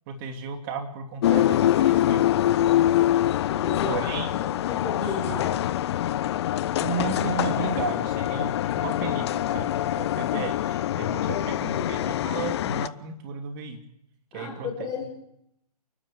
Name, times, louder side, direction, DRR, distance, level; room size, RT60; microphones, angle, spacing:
voice 1, 0.1-2.3 3.8-4.4 5.3-5.4 6.8-13.8 14.3-14.7, right 6 dB, 35° right, 5 dB, 2.6 m, -34 dB
sound 1, 1.2-12.9, left 12 dB, 40° left, 0.8 m, -24 dB
voice 2, 3.5-4.0 4.7-5.5 11.1-11.9 14.3-15.1, left 4 dB, 20° left, 0 dB, 7.0 m, -34 dB
28.5 x 12.5 x 8.3 m, 0.77 s
figure-of-eight pair, 130°, 21 cm